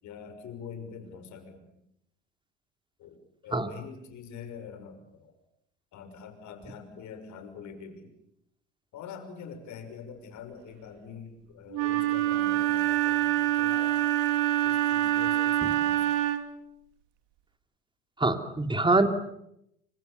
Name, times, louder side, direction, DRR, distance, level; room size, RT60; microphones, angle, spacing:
voice 1, 0.0-1.8 3.0-3.2 3.4-5.3 5.9-8.1 8.9-14.4 14.6-16.2, left 6 dB, 55° left, 8 dB, 6.1 m, -45 dB
Wind instrument woodwind instrument, 11.7-16.6, right 13 dB, 60° right, 2.7 m, -26 dB
voice 2, 18.2-19.1, right 2 dB, 15° right, 8 dB, 3.2 m, -24 dB
30.0 x 25.5 x 7.0 m, 0.80 s
hypercardioid pair, 70°, 35 cm